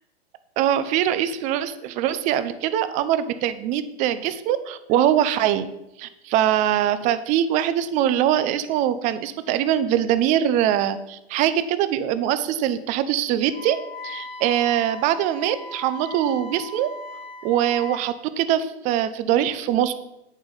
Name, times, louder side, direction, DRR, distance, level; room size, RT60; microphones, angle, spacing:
voice 1, 0.6-5.6 6.0-13.8 14.0-16.9 17.4-20.0, right 11 dB, 25° right, 12 dB, 0.5 m, -22 dB
Wind instrument woodwind instrument, 13.5-18.1, left 1 dB, 65° left, 2.0 m, -38 dB
8.7 x 7.2 x 5.5 m, 0.89 s
hypercardioid pair, 145°, 33 cm